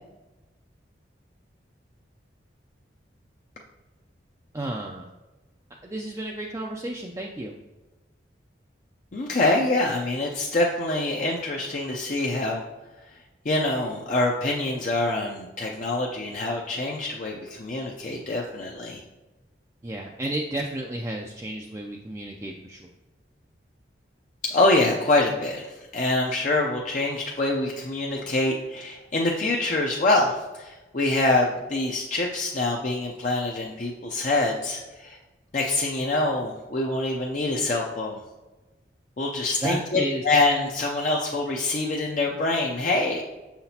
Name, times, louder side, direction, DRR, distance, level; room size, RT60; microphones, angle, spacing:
voice 1, 4.5-5.1 5.8-7.5 19.8-22.9 39.6-40.2, right 1 dB, 15° right, -1 dB, 0.3 m, -32 dB
voice 2, 9.1-12.6 13.5-19.0 24.5-35.2 35.5-38.2 39.2-43.2, left 2 dB, 40° left, -1 dB, 0.5 m, -25 dB
6.7 x 5.8 x 2.8 m, 1.1 s
head